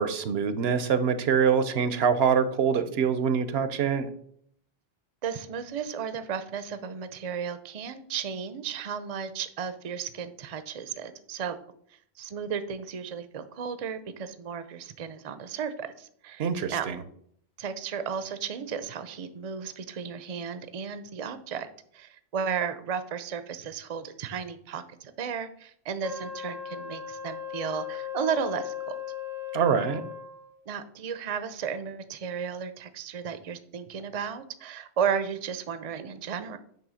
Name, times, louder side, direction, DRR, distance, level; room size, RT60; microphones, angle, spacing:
voice 1, 0.0-4.1 16.4-17.0 29.5-30.0, right 6 dB, 80° right, 11 dB, 0.9 m, -25 dB
voice 2, 5.2-11.6 12.2-16.9 17.6-21.7 21.9-29.0 30.7-36.6, right 7 dB, 45° right, 11 dB, 0.6 m, -34 dB
Wind instrument woodwind instrument, 26.0-30.6, left 9 dB, 80° left, 2.5 m, -37 dB
9.1 x 3.1 x 6.2 m, 0.65 s
omnidirectional pair, 1.0 m